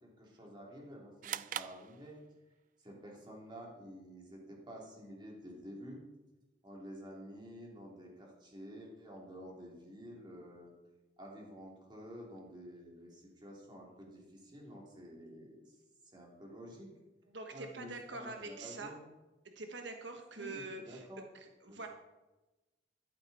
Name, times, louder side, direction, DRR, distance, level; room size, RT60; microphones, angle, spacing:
voice 1, 0.0-2.2 2.8-6.0 6.6-10.7 11.2-15.8 16.1-16.9 17.5-19.0 20.4-21.3 21.7-21.9, equal, 25° right, -2 dB, 3.1 m, -50 dB
sound 1, 1.2-2.6, right 10 dB, 45° right, 0.3 m, -42 dB
voice 2, 17.3-18.9 19.5-21.1 21.3-21.9, right 3 dB, 75° right, 4 dB, 1.2 m, -45 dB
13.5 x 11.5 x 4.2 m, 1.1 s
head